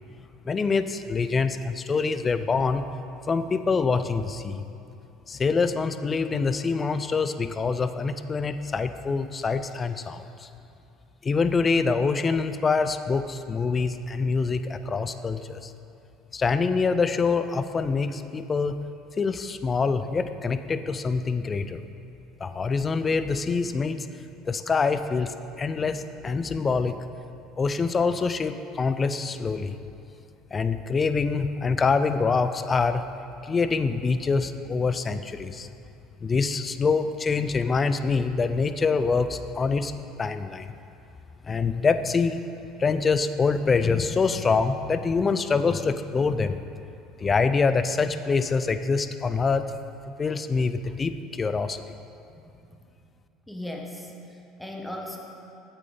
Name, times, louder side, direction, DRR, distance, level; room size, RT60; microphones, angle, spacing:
voice 1, 0.5-2.8 3.3-4.6 5.3-10.5 11.2-15.7 16.3-18.8 19.2-21.8 22.4-24.1 24.4-27.0 27.6-29.8 30.5-33.0 33.4-35.7 36.2-39.9 40.2-40.7 41.4-42.4 42.8-46.6 47.2-49.7 50.2-51.8, left 4 dB, 25° left, 11 dB, 0.4 m, -25 dB
voice 2, 53.5-55.2, left 1 dB, 5° left, 1 dB, 1.1 m, -37 dB
8.3 x 8.2 x 3.8 m, 2.7 s
supercardioid pair, 95°, 0 cm